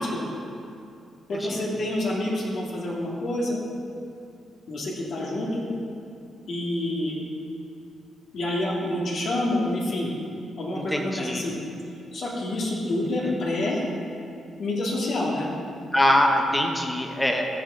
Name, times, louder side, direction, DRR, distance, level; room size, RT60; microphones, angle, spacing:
voice 1, 1.3-3.6 4.7-5.6 6.5-7.1 8.3-10.1 10.6-11.5 12.1-13.8 14.6-15.5, left 1 dB, 65° left, -3 dB, 2.2 m, -27 dB
voice 2, 10.9-11.5 13.2-13.3 15.9-17.5, left 1 dB, 10° left, 2 dB, 1.1 m, -23 dB
14.5 x 5.6 x 3.9 m, 2.5 s
cardioid pair, 80°, 0 cm